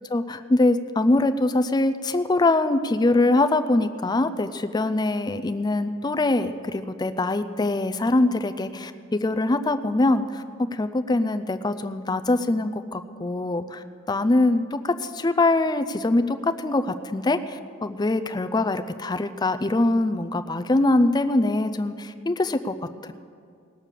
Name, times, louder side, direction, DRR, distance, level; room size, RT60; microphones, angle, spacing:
voice 1, 0.1-10.4 10.7-22.7, left 2 dB, 20° left, 10 dB, 0.4 m, -23 dB
18.5 x 6.7 x 7.3 m, 2.2 s
head